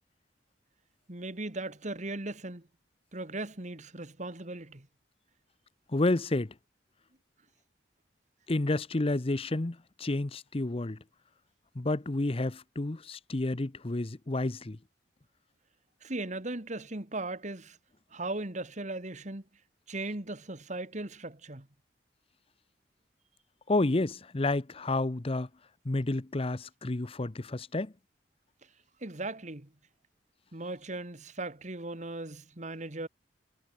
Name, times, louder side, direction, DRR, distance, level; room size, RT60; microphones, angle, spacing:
voice 1, 1.1-2.6 3.1-4.9 16.0-17.8 18.1-19.4 19.9-21.7 29.0-29.7 30.5-33.1, right 2 dB, 40° right, 2.0 m, -38 dB
voice 2, 5.9-6.5 8.5-11.0 11.7-14.8 23.7-25.5 25.8-27.9, left 2 dB, 30° left, 0.8 m, -30 dB
head